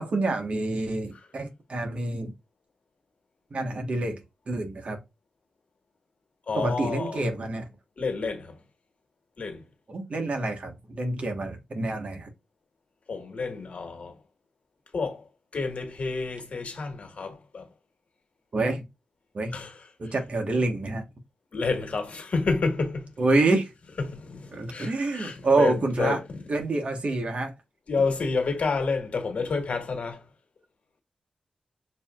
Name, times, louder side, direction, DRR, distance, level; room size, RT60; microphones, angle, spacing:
voice 1, 0.0-2.3 3.5-5.0 6.6-7.7 9.9-12.3 18.5-18.9 19.3-19.5 20.0-21.1 23.2-23.7 24.5-26.2 26.5-27.5, right 2 dB, 55° right, 1.3 m, -27 dB
voice 2, 6.5-7.2 8.0-8.6 9.4-9.7 13.1-14.2 14.9-17.7 19.5-19.8 21.5-23.1 24.0-26.4 27.9-30.3, left 4 dB, 60° left, 1.7 m, -30 dB
6.5 x 2.8 x 2.4 m
cardioid pair, 75°, 3 cm